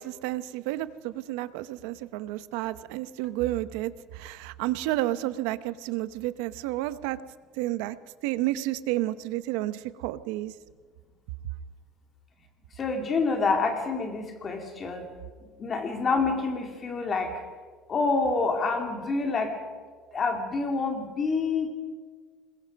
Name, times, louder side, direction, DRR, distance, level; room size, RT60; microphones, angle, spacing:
voice 1, 0.0-7.2 7.6-8.0 8.2-10.5, right 16 dB, 75° right, 14 dB, 0.8 m, -31 dB
voice 2, 12.8-15.1 15.6-17.3 17.9-19.5 20.1-21.7, left 4 dB, 25° left, 4 dB, 2.5 m, -27 dB
26.0 x 21.5 x 5.3 m, 1.5 s
cardioid pair, 175°, 0 cm